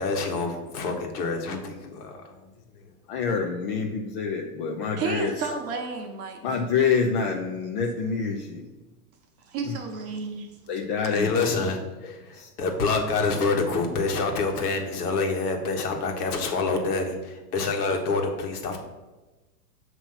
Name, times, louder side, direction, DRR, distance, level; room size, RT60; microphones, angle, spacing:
voice 1, 0.0-2.5 2.7-2.8 3.1-3.2 11.1-18.8, left 3 dB, 75° left, 2 dB, 1.3 m, -27 dB
voice 2, 3.1-5.6 6.4-8.6 9.6-9.8 10.7-11.7 12.3-12.5, left 5 dB, 40° left, 1 dB, 0.4 m, -27 dB
voice 3, 5.0-6.4 9.5-10.5, right 4 dB, 30° right, 3 dB, 0.9 m, -31 dB
6.5 x 3.0 x 5.6 m, 1.1 s
supercardioid pair, 140°, 46 cm